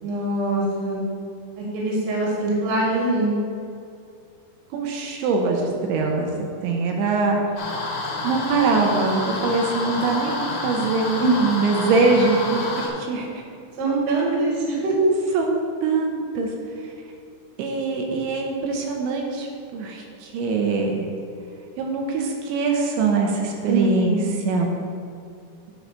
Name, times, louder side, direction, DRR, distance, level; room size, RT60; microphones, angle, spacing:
voice 1, 0.0-1.0 1.6-3.4 11.2-11.5 13.8-14.9 23.6-24.3, right 2 dB, 50° right, -4 dB, 2.3 m, -23 dB
voice 2, 4.7-6.3 6.6-7.7 8.2-13.3 15.3-16.5 17.6-19.5 19.7-21.1 21.8-24.2 24.4-24.7, right 4 dB, 80° right, 1 dB, 3.1 m, -23 dB
sound 1, 7.6-12.9, left 2 dB, 60° left, 3.0 m, -29 dB
10.5 x 4.7 x 5.3 m, 2.4 s
omnidirectional pair, 5.3 m